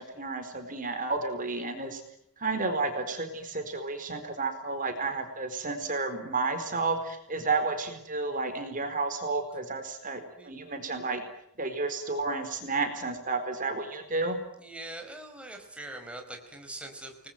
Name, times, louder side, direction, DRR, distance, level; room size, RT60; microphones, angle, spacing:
voice 1, 0.0-2.0 2.4-11.2 11.6-14.4, right 3 dB, 40° right, 7 dB, 4.3 m, -31 dB
voice 2, 14.6-17.3, right 1 dB, 5° right, 3 dB, 4.9 m, -42 dB
29.0 x 21.0 x 9.3 m, 0.76 s
head